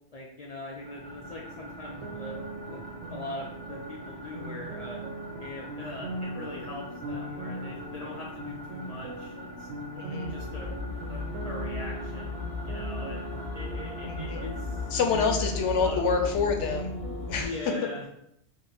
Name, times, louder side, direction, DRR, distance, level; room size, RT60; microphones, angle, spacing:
voice 1, 0.1-2.4 2.7-2.8 3.1-5.0 5.4-9.7 10.1-10.7 11.1-15.2 15.7-16.4 17.4-18.0, left 1 dB, 60° left, -3 dB, 0.4 m, -41 dB
sound 1, 0.7-15.3, right 1 dB, 45° right, 0.3 m, -45 dB
sound 2, 1.9-17.5, right 2 dB, 85° right, 0.9 m, -40 dB
voice 2, 9.9-10.3 14.0-14.5 14.9-16.9 17.2-17.5 17.8-17.9, left 5 dB, 90° left, 4 dB, 0.9 m, -27 dB
sound 3, 10.2-17.4, left 3 dB, 20° right, 0.9 m, -36 dB
2.8 x 2.1 x 3.8 m, 0.76 s
omnidirectional pair, 1.2 m